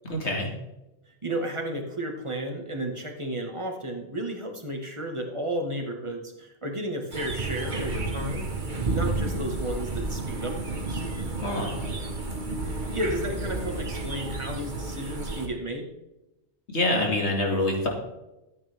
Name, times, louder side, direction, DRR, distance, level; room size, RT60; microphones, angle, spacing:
voice 1, 0.0-0.5 11.4-11.8 16.7-17.9, left 2 dB, 75° left, 0 dB, 2.7 m, -26 dB
voice 2, 1.1-8.5 8.9-11.0 12.7-15.9, right 1 dB, 25° right, 2 dB, 1.9 m, -33 dB
sound 1, 7.1-15.5, right 2 dB, 45° right, 1.6 m, -31 dB
13.5 x 8.9 x 3.6 m, 0.94 s
omnidirectional pair, 1.2 m